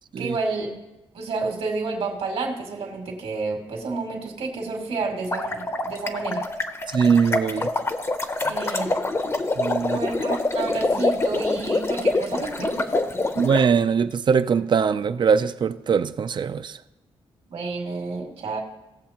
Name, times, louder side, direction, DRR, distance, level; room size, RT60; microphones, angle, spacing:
voice 1, 0.2-0.7 1.1-6.4 8.5-9.0 9.8-12.9 17.5-18.6, right 3 dB, 75° right, 2.3 m, -30 dB
sound 1, 5.1-13.6, left 2 dB, 25° left, 0.7 m, -25 dB
voice 2, 6.9-7.7 8.5-8.6 9.6-10.0 13.4-16.8, right 6 dB, 50° right, 0.4 m, -21 dB
18.0 x 7.0 x 2.9 m
wide cardioid pair, 120°, 10 cm